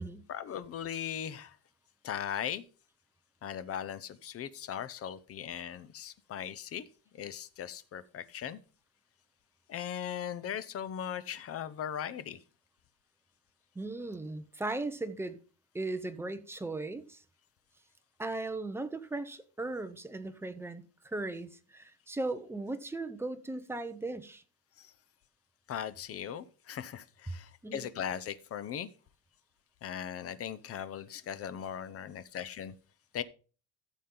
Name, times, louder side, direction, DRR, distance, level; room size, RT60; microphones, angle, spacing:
voice 1, 0.3-1.6 2.0-2.6 3.4-6.8 7.1-8.6 9.7-12.4 24.8-24.9 25.7-28.9 29.8-32.7 33.1-33.2, left 9 dB, 35° left, 0.7 m, -38 dB
voice 2, 13.7-15.4 15.7-17.2 18.2-24.4 27.6-27.9, right 2 dB, 5° right, 0.7 m, -37 dB
14.0 x 7.3 x 3.8 m
cardioid pair, 155°, 40 cm